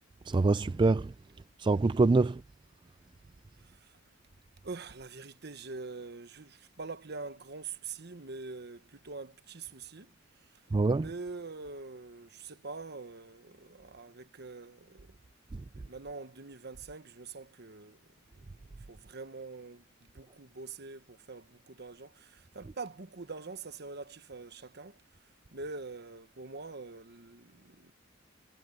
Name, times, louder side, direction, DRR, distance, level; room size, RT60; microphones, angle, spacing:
voice 1, 0.3-1.1 1.6-2.4 10.7-11.1, right 3 dB, 25° right, 0.3 m, -25 dB
voice 2, 3.6-3.9 4.6-10.1 10.4-10.5 10.9-15.2 15.7-18.0 18.3-18.5 18.9-25.0 25.5-27.9, right 4 dB, 55° right, 1.2 m, -44 dB
head